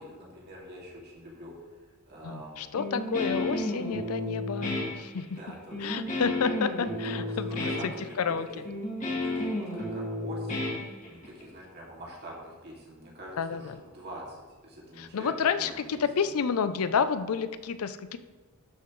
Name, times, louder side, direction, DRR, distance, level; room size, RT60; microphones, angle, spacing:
voice 1, 0.0-1.6 2.1-2.7 5.4-6.0 7.1-8.3 9.2-10.7 11.1-16.0, equal, 45° right, -4 dB, 2.3 m, -45 dB
voice 2, 2.2-5.4 5.8-7.9 8.2-8.5 13.4-13.6 15.0-18.2, left 6 dB, 75° left, 12 dB, 0.5 m, -30 dB
Guitar, 2.8-11.4, left 1 dB, 35° left, 2.0 m, -32 dB
12.0 x 5.8 x 3.1 m, 1.3 s
head